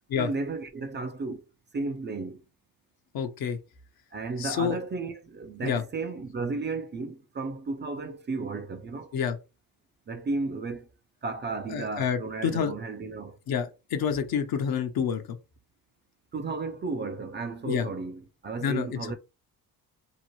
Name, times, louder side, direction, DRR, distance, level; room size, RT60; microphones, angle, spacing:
voice 1, 0.1-1.4 1.7-2.4 4.1-9.1 10.1-10.9 11.2-13.4 16.3-19.1, right 3 dB, 30° right, 0.4 m, -33 dB
voice 2, 3.1-3.6 4.4-4.8 5.6-5.8 9.1-9.4 11.7-12.7 13.5-15.2 17.6-17.9 18.6-19.0, left 7 dB, 60° left, 0.7 m, -28 dB
2.9 x 2.0 x 3.0 m
supercardioid pair, 65°, 40 cm